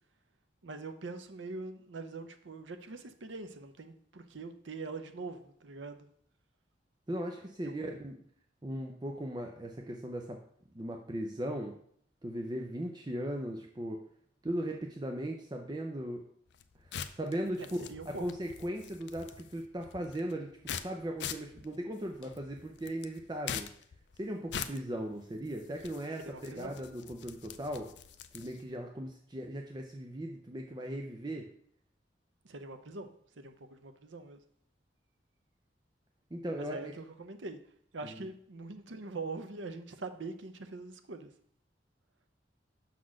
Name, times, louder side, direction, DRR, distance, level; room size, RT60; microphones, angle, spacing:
voice 1, 0.6-6.1 7.7-7.9 17.6-18.2 26.2-26.7 32.4-33.1 33.4-34.4 36.6-37.6 37.9-41.3, right 3 dB, 80° right, 8 dB, 0.7 m, -43 dB
voice 2, 7.1-8.2 8.6-10.4 10.7-11.7 12.2-14.0 14.4-16.3 17.1-23.7 24.2-27.9 28.3-31.5 36.3-36.9 38.0-38.3, right 1 dB, 25° right, 2 dB, 0.5 m, -38 dB
sound 1, 16.5-28.7, left 8 dB, 65° left, 0.4 m, -45 dB
5.9 x 4.0 x 6.3 m, 0.64 s
head